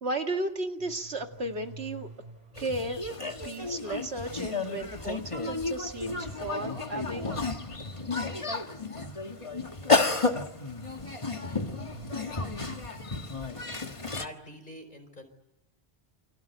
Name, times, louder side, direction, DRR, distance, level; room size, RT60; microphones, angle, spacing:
voice 1, 0.0-2.1 2.6-3.0 3.4-7.3, right 2 dB, 85° right, 4 dB, 2.4 m, -34 dB
sound 1, 0.8-4.3 5.9-9.0 11.1-13.4, right 3 dB, 40° right, 4.2 m, -50 dB
sound 2, 2.6-14.3, left 3 dB, 30° left, 1.6 m, -32 dB
voice 2, 14.2-15.3, left 1 dB, 45° left, 6 dB, 5.0 m, -45 dB
29.0 x 25.0 x 8.1 m, 0.85 s
omnidirectional pair, 1.1 m